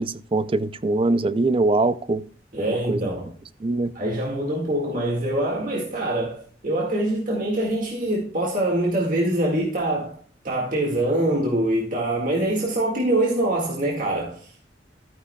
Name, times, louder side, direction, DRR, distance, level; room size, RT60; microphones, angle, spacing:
voice 1, 0.0-2.2 2.9-3.0 3.6-3.9, right 2 dB, 30° right, 0.4 m, -22 dB
voice 2, 2.5-3.3 3.9-10.2 10.4-14.7, right 1 dB, 45° right, 1.9 m, -24 dB
13.0 x 9.7 x 2.3 m
head